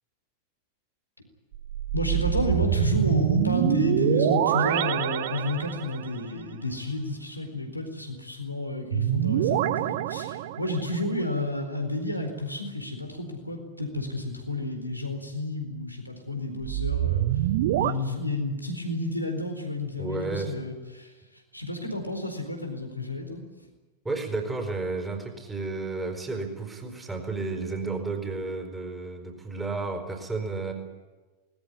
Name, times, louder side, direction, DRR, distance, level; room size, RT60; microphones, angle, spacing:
sound 1, 1.5-6.1 8.9-11.0 16.6-17.9, right 13 dB, 55° right, 1.0 m, -25 dB
voice 1, 1.9-17.3 17.8-21.1 21.5-23.4, left 1 dB, 90° left, 4 dB, 4.2 m, -31 dB
voice 2, 20.0-20.5 24.0-30.7, right 3 dB, 10° right, 4 dB, 4.5 m, -32 dB
20.5 x 19.5 x 9.9 m, 1.3 s
figure-of-eight pair, 90°, 0 cm